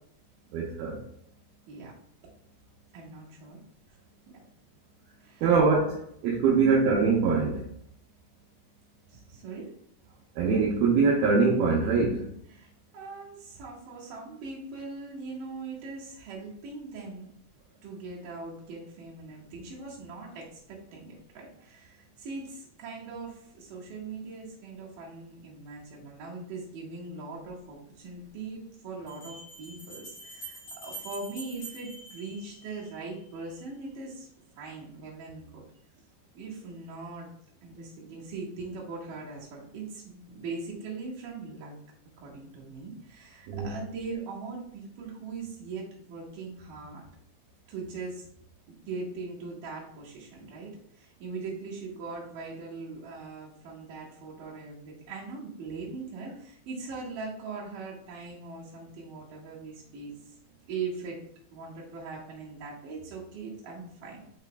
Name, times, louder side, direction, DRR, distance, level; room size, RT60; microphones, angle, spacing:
voice 1, 0.5-1.0 5.4-7.6 10.4-12.2 43.5-43.7, right 4 dB, 75° right, -3 dB, 2.3 m, -23 dB
voice 2, 2.9-3.6 4.3-4.4 5.2-5.6 6.5-6.9 9.1-9.7 12.5-17.3 17.8-34.3 34.6-35.6 36.3-37.3 37.6-41.7 42.2-47.0 47.7-48.3 48.9-60.1 60.7-61.2 61.5-64.2, right 4 dB, 60° right, -4 dB, 2.7 m, -40 dB
sound 1, 27.4-27.5 29.1-33.0, right 2 dB, 45° left, 3.4 m, -45 dB
7.4 x 5.7 x 2.3 m, 0.68 s
omnidirectional pair, 5.2 m